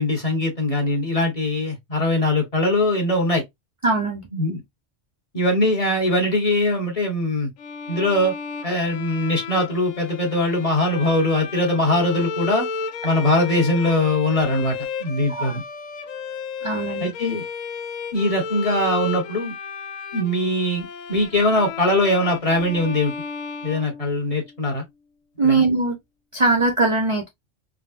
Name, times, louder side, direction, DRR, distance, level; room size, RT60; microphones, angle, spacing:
voice 1, 0.0-3.4 4.3-4.6 5.3-7.5 7.9-8.3 8.6-12.7 13.0-14.7 15.0-15.6 17.0-17.4 18.1-19.5 20.1-23.1 23.6-24.8 25.4-25.6, left 1 dB, 30° left, 1.0 m, -21 dB
voice 2, 3.8-4.3 15.3-15.6 16.6-17.1 25.4-26.0 26.3-27.3, right 3 dB, 45° right, 0.4 m, -21 dB
Bowed string instrument, 7.6-24.6, left 5 dB, 85° left, 1.0 m, -33 dB
3.7 x 2.0 x 2.4 m
omnidirectional pair, 1.3 m